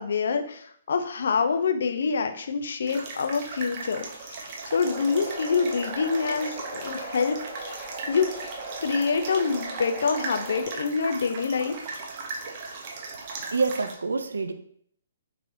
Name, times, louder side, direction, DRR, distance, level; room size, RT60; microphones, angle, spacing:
voice 1, 0.0-7.8 8.1-8.3 8.8-11.7, left 5 dB, 65° left, 6 dB, 0.4 m, -26 dB
sound 1, 2.9-13.9, right 4 dB, 40° right, 0.6 m, -38 dB
sound 2, 4.8-10.6, right 2 dB, 20° right, 1.2 m, -38 dB
voice 2, 13.5-14.5, right 4 dB, 80° right, 9 dB, 0.3 m, -26 dB
3.0 x 3.0 x 2.6 m, 0.64 s
figure-of-eight pair, 130°, 0 cm